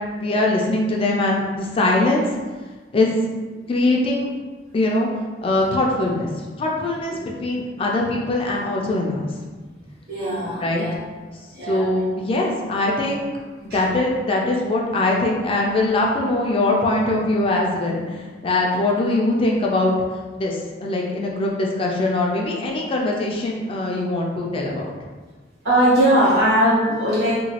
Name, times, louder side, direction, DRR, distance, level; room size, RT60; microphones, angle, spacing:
voice 1, 0.2-2.3 2.9-3.1 3.7-4.3 4.7-5.1 5.4-9.3 10.6-10.9 11.7-13.2 13.6-24.9, left 2 dB, 30° left, -1 dB, 0.3 m, -22 dB
voice 2, 10.1-10.9 11.5-11.9 13.7-13.8 24.6-24.7 25.6-27.4, right 1 dB, 60° right, -8 dB, 1.3 m, -19 dB
2.9 x 2.3 x 2.8 m, 1.3 s
head